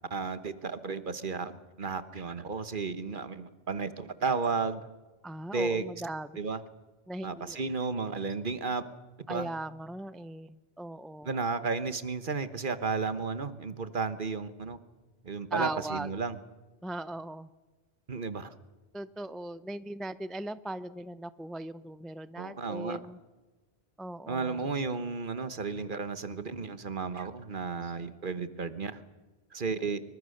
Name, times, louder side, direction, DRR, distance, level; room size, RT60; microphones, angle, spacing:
voice 1, 0.1-4.8 5.5-5.8 6.3-6.6 7.2-8.8 9.3-9.5 11.2-14.8 15.2-16.4 18.1-18.5 22.4-23.0 24.3-29.0 29.5-30.0, right 4 dB, 50° right, 11 dB, 1.3 m, -33 dB
voice 2, 5.2-6.4 7.1-7.6 9.3-11.4 15.5-16.1 16.8-17.5 18.9-23.2 24.0-24.7, right 1 dB, ahead, 14 dB, 0.4 m, -38 dB
25.5 x 24.0 x 6.6 m, 1.2 s
omnidirectional pair, 1.1 m